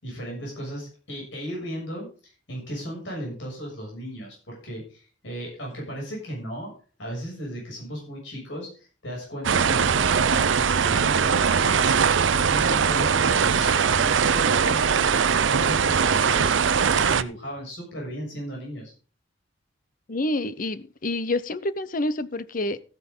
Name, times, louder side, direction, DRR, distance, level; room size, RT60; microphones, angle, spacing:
voice 1, 0.0-6.7 7.0-18.9, equal, 75° left, 6.9 m, -36 dB
sound 1, 9.4-17.2, right 6 dB, 80° right, 0.6 m, -21 dB
voice 2, 20.1-22.8, left 2 dB, 45° left, 0.8 m, -28 dB
14.5 x 9.4 x 3.8 m
head